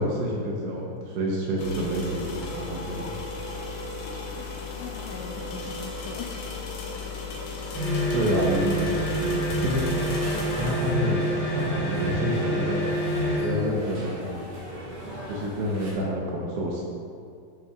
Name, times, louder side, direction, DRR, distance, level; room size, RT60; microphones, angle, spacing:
voice 1, 0.0-3.1 8.1-9.8 10.6-12.8 13.4-14.2 15.3-16.8, equal, 80° right, -2 dB, 2.9 m, -28 dB
sound 1, 1.6-10.7, left 3 dB, 75° left, 2.5 m, -35 dB
voice 2, 4.2-6.5 9.9-10.0 10.3-11.0 15.3-15.5, left 7 dB, 90° left, 1 dB, 2.6 m, -41 dB
sound 2, 7.7-13.6, equal, 50° left, 3.0 m, -27 dB
sound 3, 9.5-15.9, equal, 55° right, 2.2 m, -38 dB
13.5 x 6.0 x 2.4 m, 2.3 s
omnidirectional pair, 5.9 m